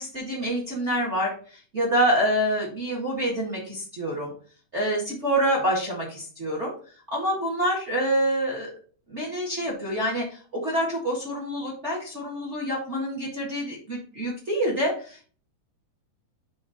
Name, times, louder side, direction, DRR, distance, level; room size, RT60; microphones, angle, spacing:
voice 1, 0.0-4.3 4.7-6.7 7.1-8.7 9.1-15.3, equal, 35° right, -2 dB, 1.1 m, -27 dB
7.0 x 3.6 x 5.0 m, 0.42 s
omnidirectional pair, 4.2 m